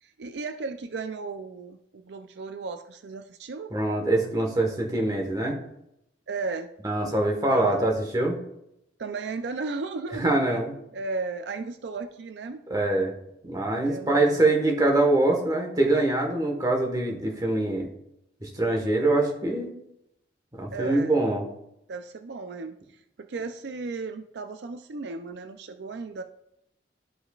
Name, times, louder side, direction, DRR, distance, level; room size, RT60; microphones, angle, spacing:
voice 1, 0.0-3.7 6.3-6.7 7.5-7.9 9.0-10.4 10.9-12.6 13.8-14.5 20.7-21.2 21.9-26.2, right 4 dB, 70° right, 8 dB, 0.4 m, -35 dB
voice 2, 3.7-5.6 6.8-8.4 10.2-10.7 12.7-13.1 13.4-17.9 18.4-19.7 20.5-21.5, right 2 dB, 20° right, 1 dB, 1.3 m, -24 dB
12.5 x 5.5 x 2.4 m, 0.81 s
head